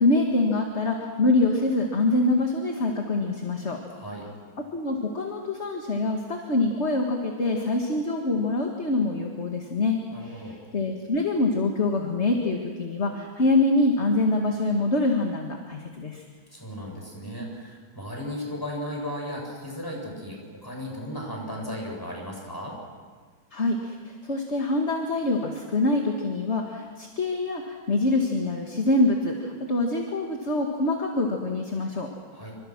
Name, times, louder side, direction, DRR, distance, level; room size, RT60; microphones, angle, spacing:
voice 1, 0.0-3.8 4.7-16.2 23.5-32.1, left 2 dB, 35° left, 2 dB, 2.1 m, -25 dB
voice 2, 3.9-4.3 10.1-10.6 16.5-22.8 32.3-32.5, equal, 10° left, -1 dB, 7.2 m, -35 dB
28.0 x 25.5 x 6.1 m, 1.5 s
omnidirectional pair, 2.3 m